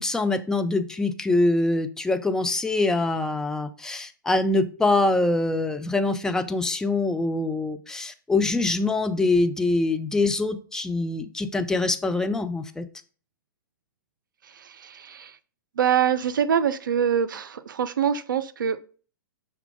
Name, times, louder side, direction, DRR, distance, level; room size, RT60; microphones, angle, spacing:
voice 1, 0.0-12.9, left 2 dB, 5° left, 8 dB, 0.3 m, -24 dB
voice 2, 14.4-15.4 15.8-18.8, right 8 dB, 70° right, 13 dB, 0.4 m, -25 dB
5.7 x 2.2 x 3.7 m, 0.40 s
figure-of-eight pair, 110°, 11 cm